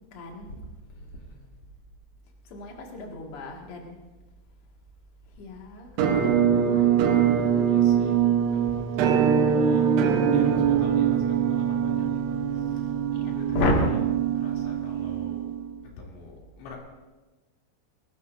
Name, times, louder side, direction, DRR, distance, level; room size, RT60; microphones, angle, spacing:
voice 1, 0.1-0.7 2.5-4.0 5.2-6.9 13.1-13.9, left 2 dB, 50° left, 0 dB, 1.7 m, -31 dB
voice 2, 1.0-1.5 7.7-9.9 10.3-12.9 13.3-15.5 16.0-16.8, left 2 dB, 75° left, -2 dB, 5.6 m, -44 dB
Musical instrument, 6.0-15.8, right 8 dB, 70° right, 2.8 m, -23 dB
22.0 x 19.0 x 2.7 m, 1.2 s
omnidirectional pair, 5.8 m